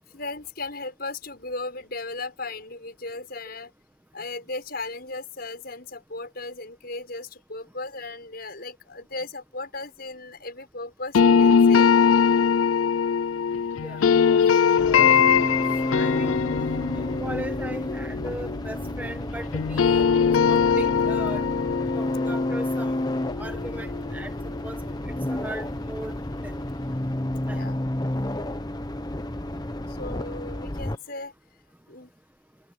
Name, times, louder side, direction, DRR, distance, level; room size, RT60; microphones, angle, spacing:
voice 1, 0.1-3.7 4.1-11.9 27.4-27.8 29.9-31.3 31.9-32.1, left 2 dB, 50° left, 6.7 m, -36 dB
sound 1, 11.1-19.2 19.5-24.5, left 6 dB, 80° left, 0.4 m, -22 dB
sound 2, 14.8-31.0, left 1 dB, 20° left, 0.9 m, -30 dB
voice 2, 14.9-15.3 15.8-16.4 16.9-20.1 20.4-21.4 21.9-22.9 23.4-24.3 24.6-24.8 25.1-26.1 26.4-26.6 27.5-27.7, right 1 dB, 10° right, 1.1 m, -38 dB
head